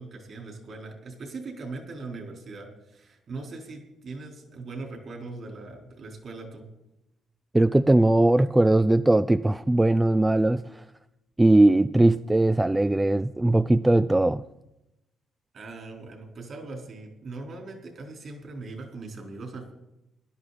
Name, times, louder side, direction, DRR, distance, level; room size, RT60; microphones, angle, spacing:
voice 1, 0.0-6.6 15.5-19.7, right 3 dB, 55° right, 2 dB, 4.2 m, -40 dB
voice 2, 7.5-10.6 11.4-14.4, right 2 dB, 10° right, 14 dB, 0.4 m, -20 dB
17.0 x 11.5 x 4.2 m, 0.91 s
cardioid pair, 90°, 0 cm